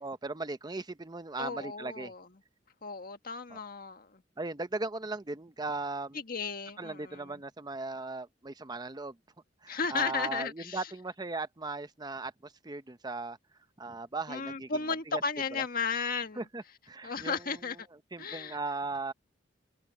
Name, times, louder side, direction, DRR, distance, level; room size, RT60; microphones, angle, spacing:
voice 1, 0.0-2.1 3.5-3.6 4.4-6.2 6.8-9.2 9.6-13.4 13.8-14.8 15.1-15.2 15.5-15.6 16.4-17.4 18.1-19.1, right 3 dB, 20° right, 0.8 m, -38 dB
voice 2, 1.4-2.3 2.8-4.2 6.1-7.4 9.7-10.9 14.3-16.4 17.0-17.9 18.2-18.6, left 5 dB, 50° left, 1.6 m, -34 dB
head